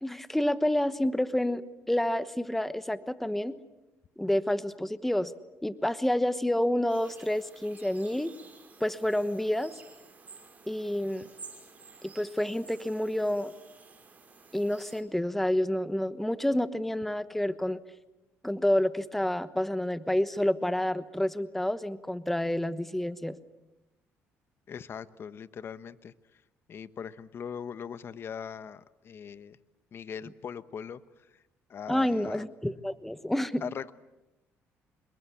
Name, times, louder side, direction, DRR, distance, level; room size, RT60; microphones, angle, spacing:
voice 1, 0.0-3.5 4.2-5.3 5.6-8.3 8.8-9.7 10.7-11.3 12.0-13.5 14.5-17.8 18.4-23.4 31.9-33.6, left 1 dB, 5° left, 13 dB, 1.1 m, -29 dB
sound 1, 6.9-15.0, right 4 dB, 30° right, 6.2 m, -52 dB
voice 2, 24.7-26.1 26.7-29.6 29.9-31.0 31.3-31.4 31.7-32.4 33.6-33.9, left 7 dB, 50° left, 14 dB, 1.1 m, -40 dB
26.5 x 22.5 x 8.5 m, 1.0 s
cardioid pair, 100°, 5 cm